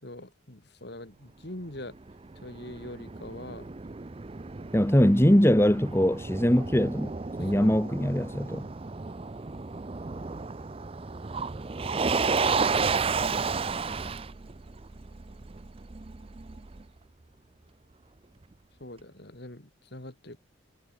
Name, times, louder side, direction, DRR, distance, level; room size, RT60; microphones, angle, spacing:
voice 1, 0.0-2.0 2.4-3.7 7.4-7.7 8.0-8.1 18.8-20.4, left 1 dB, 55° left, 2.8 m, -43 dB
Motor vehicle (road), 1.8-16.8, right 4 dB, 30° right, 0.5 m, -32 dB
voice 2, 4.7-7.1 7.4-8.7, equal, 10° left, 1.2 m, -22 dB
head